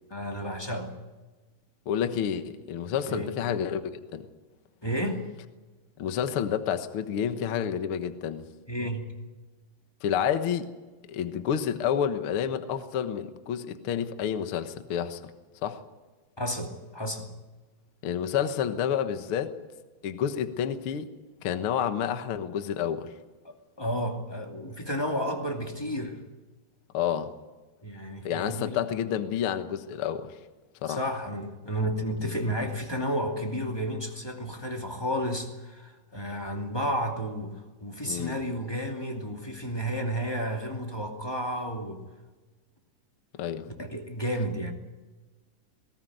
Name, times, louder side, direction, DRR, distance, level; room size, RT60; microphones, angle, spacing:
voice 1, 0.1-0.9 3.1-3.3 4.8-5.2 8.7-9.0 16.4-17.3 23.8-26.2 27.8-28.8 30.9-37.5 37.8-42.0 43.7-44.7, equal, 10° left, 2 dB, 1.6 m, -32 dB
voice 2, 1.8-3.8 4.1-4.2 6.0-8.5 10.0-10.7 11.1-15.2 15.6-15.8 18.0-19.6 20.0-21.1 21.4-23.1 26.9-27.3 28.2-30.3 30.8-31.0 32.2-32.3 38.0-38.4 43.3-43.7, left 8 dB, 70° left, 9 dB, 1.2 m, -29 dB
20.0 x 18.0 x 9.3 m, 1.2 s
omnidirectional pair, 4.4 m